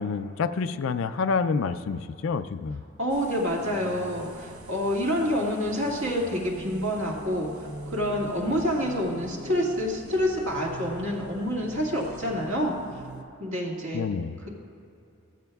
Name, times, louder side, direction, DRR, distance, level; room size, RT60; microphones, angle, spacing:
voice 1, 0.0-2.8 13.9-14.4, left 5 dB, 70° left, 11 dB, 0.4 m, -28 dB
voice 2, 3.0-7.5 7.9-12.8 13.4-14.0, equal, 65° right, -3 dB, 2.0 m, -27 dB
sound 1, 3.1-13.2, right 2 dB, 80° right, 0.7 m, -43 dB
14.5 x 14.5 x 2.3 m, 2.7 s
head